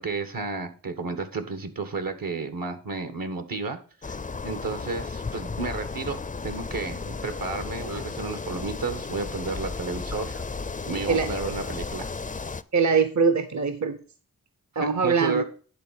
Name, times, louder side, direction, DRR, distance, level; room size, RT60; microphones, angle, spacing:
voice 1, 0.0-4.2 4.4-10.3 10.8-12.1 14.7-15.4, right 3 dB, 75° right, 9 dB, 1.4 m, -32 dB
sound 1, 4.0-12.6, left 4 dB, 25° left, 0.4 m, -34 dB
voice 2, 12.7-14.0 14.8-15.4, right 5 dB, 55° right, 10 dB, 0.8 m, -23 dB
10.0 x 3.8 x 6.9 m, 0.40 s
cardioid pair, 45°, 35 cm